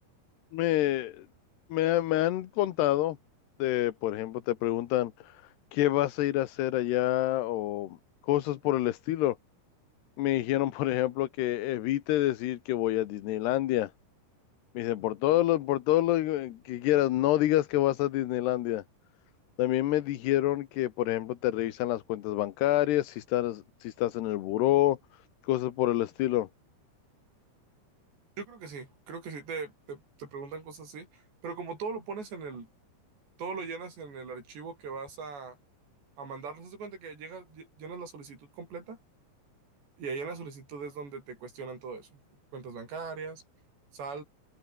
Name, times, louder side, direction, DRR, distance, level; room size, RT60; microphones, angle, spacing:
voice 1, 0.5-1.3 1.7-3.2 3.6-5.4 5.7-8.0 8.3-9.4 10.2-13.9 14.7-18.8 19.6-25.0 25.4-26.5, left 14 dB, 75° left, 3.4 m, -27 dB
voice 2, 28.4-32.7 33.4-35.6 36.2-39.0 40.0-42.1 42.5-43.4 43.9-44.2, right 5 dB, 85° right, 9.6 m, -40 dB
omnidirectional pair, 4.8 m